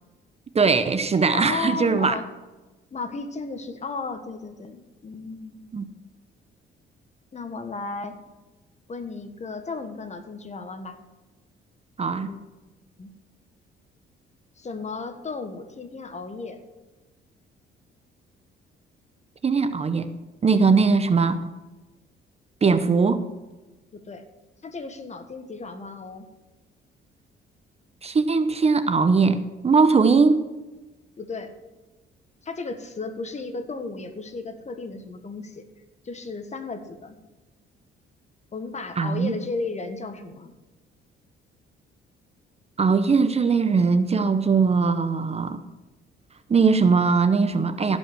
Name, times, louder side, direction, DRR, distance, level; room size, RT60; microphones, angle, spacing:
voice 1, 0.5-2.2 5.7-5.9 12.0-12.3 19.4-20.2 20.4-21.5 22.6-23.2 28.0-30.4 39.0-39.3 42.8-45.6 46.5-48.0, right 4 dB, 30° right, 11 dB, 0.8 m, -20 dB
voice 2, 1.3-2.3 2.9-5.6 7.3-8.2 8.9-11.0 12.3-12.5 13.0-13.1 14.6-16.6 23.9-24.2 24.6-26.3 31.2-31.5 32.4-35.6 36.0-37.2 38.5-40.5, left 4 dB, 35° left, 8 dB, 1.4 m, -34 dB
16.0 x 5.4 x 6.2 m, 1.1 s
cardioid pair, 90°, 20 cm